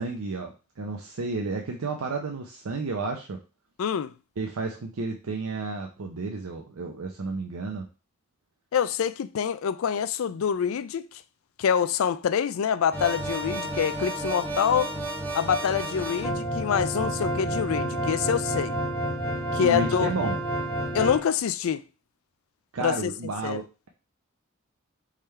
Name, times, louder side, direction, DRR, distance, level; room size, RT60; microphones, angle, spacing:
voice 1, 0.0-3.4 4.4-7.9 17.5-17.6 19.6-20.4 22.7-23.9, right 3 dB, 85° right, 0.6 m, -32 dB
voice 2, 3.8-4.1 8.7-11.1 11.6-14.9 15.3-18.8 19.5-20.1 20.9-21.8 22.8-23.1 23.4-23.6, left 7 dB, 75° left, 0.4 m, -26 dB
sound 1, 12.9-21.2, right 1 dB, 10° left, 1.0 m, -30 dB
3.7 x 3.3 x 4.2 m
head